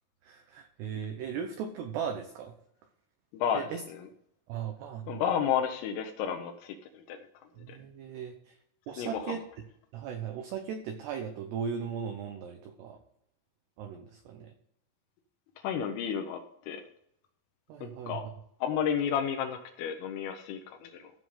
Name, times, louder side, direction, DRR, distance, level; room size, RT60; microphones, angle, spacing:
voice 1, 0.2-2.5 3.5-3.8 4.5-5.2 7.6-8.6 8.9-9.4 9.9-13.0 13.8-14.5 17.7-18.3, right 7 dB, 80° right, 5 dB, 2.4 m, -37 dB
voice 2, 3.3-3.7 5.1-7.2 7.7-7.8 9.0-9.4 15.6-16.4 16.7-16.8 17.8-18.2 18.6-21.1, left 8 dB, 80° left, 3 dB, 3.4 m, -31 dB
15.5 x 5.8 x 4.9 m, 0.73 s
omnidirectional pair, 6.0 m